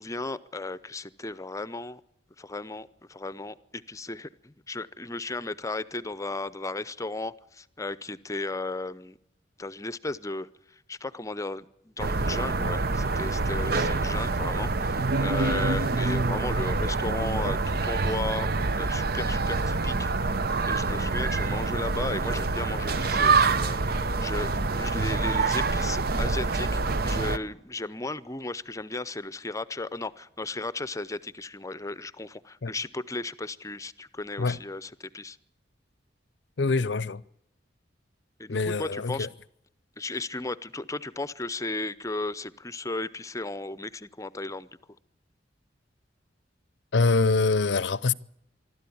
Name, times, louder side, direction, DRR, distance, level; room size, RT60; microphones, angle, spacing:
voice 1, 0.0-2.0 2.4-9.2 9.6-18.5 18.8-35.4 38.4-39.3 40.0-44.7, left 2 dB, 20° left, 0.7 m, -35 dB
sound 1, 12.0-27.4, right 3 dB, 55° right, 0.8 m, -26 dB
voice 2, 36.6-37.2 38.5-39.3 46.9-48.1, left 3 dB, 70° left, 0.7 m, -24 dB
25.0 x 13.0 x 8.6 m
head